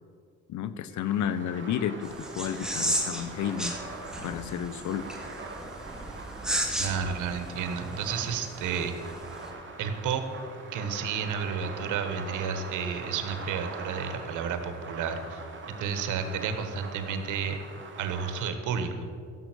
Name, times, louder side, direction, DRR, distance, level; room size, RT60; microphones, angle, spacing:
voice 1, 0.5-3.7 4.2-5.1, left 9 dB, 70° left, 14 dB, 0.7 m, -31 dB
sound 1, 0.9-18.5, right 3 dB, 40° right, 2.4 m, -43 dB
sound 2, 2.0-9.5, right 1 dB, ahead, 2.1 m, -35 dB
voice 2, 6.8-8.9 9.8-10.2 10.7-15.4 15.8-17.6 18.0-19.1, right 6 dB, 85° right, 8 dB, 1.4 m, -31 dB
15.0 x 7.5 x 6.2 m, 2.3 s
cardioid pair, 90°, 30 cm